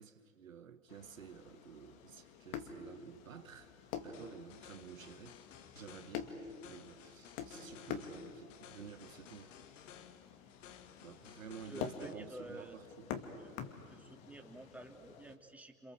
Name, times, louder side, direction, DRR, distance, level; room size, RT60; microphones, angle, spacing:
voice 1, 0.0-9.6 11.0-13.1, right 7 dB, 85° right, 1.4 m, -52 dB
sound 1, 0.9-15.4, left 7 dB, 55° left, 2.5 m, -48 dB
sound 2, 4.1-12.1, left 9 dB, 70° left, 1.8 m, -57 dB
voice 2, 11.7-12.8 13.4-13.5 13.9-15.9, right 1 dB, 5° right, 3.0 m, -51 dB
28.5 x 27.0 x 7.7 m
hypercardioid pair, 90°, 39 cm